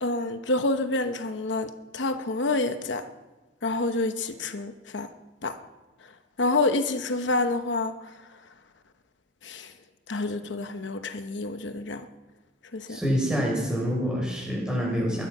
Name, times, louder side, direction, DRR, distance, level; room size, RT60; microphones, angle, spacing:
voice 1, 0.0-3.1 3.6-5.1 5.4-5.6 6.4-7.9 9.4-9.7 10.1-12.1 12.7-13.0, left 2 dB, 85° left, 0.9 m, -28 dB
voice 2, 12.9-15.2, equal, 5° right, 6.5 m, -26 dB
21.5 x 11.0 x 5.5 m
head